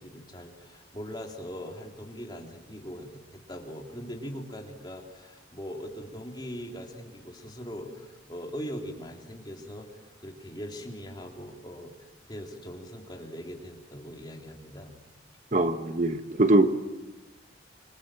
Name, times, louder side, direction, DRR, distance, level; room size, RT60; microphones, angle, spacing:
voice 1, 0.0-9.9 10.2-11.9 12.3-14.9, equal, 25° left, 1 dB, 3.6 m, -41 dB
voice 2, 15.5-16.7, right 2 dB, 40° right, 8 dB, 1.1 m, -22 dB
26.0 x 26.0 x 7.6 m, 1.1 s
head